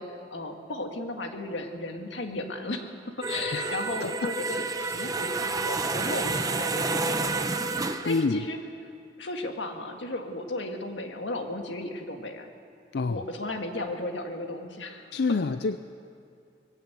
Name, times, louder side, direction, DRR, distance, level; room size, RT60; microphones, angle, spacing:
voice 1, 0.0-8.6 9.2-12.5 13.1-15.4, left 2 dB, 90° left, 4 dB, 1.9 m, -35 dB
sound 1, 3.2-8.2, right 3 dB, 20° right, 0.8 m, -29 dB
voice 2, 3.5-4.3 8.1-8.4 12.9-13.2 15.1-15.8, left 4 dB, 65° left, 11 dB, 0.5 m, -28 dB
20.5 x 16.0 x 8.1 m, 2.4 s
head